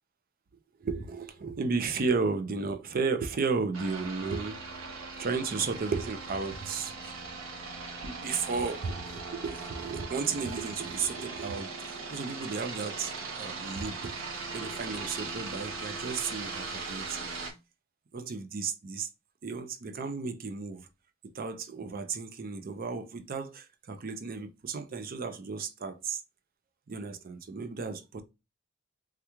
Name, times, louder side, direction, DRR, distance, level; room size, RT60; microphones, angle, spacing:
voice 1, 0.8-4.6 5.2-7.2 8.0-13.1 13.4-14.2 14.5-17.3 18.1-19.1 19.4-20.8 21.3-26.2 26.9-28.2, right 4 dB, 45° right, 0.5 m, -33 dB
sound 1, 3.7-17.5, right 4 dB, 75° right, 0.8 m, -39 dB
3.4 x 2.3 x 2.9 m
head